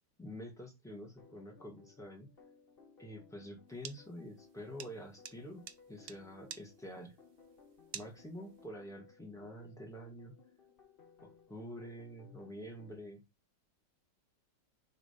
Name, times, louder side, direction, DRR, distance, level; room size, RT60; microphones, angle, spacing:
voice 1, 0.2-2.3 3.0-7.1 7.9-10.3 11.2-13.2, equal, ahead, 1 dB, 1.6 m, -47 dB
sound 1, 1.0-13.0, left 5 dB, 40° left, 0.9 m, -62 dB
sound 2, 3.7-8.6, right 8 dB, 75° right, 0.6 m, -49 dB
5.1 x 3.9 x 5.1 m, 0.22 s
omnidirectional pair, 1.9 m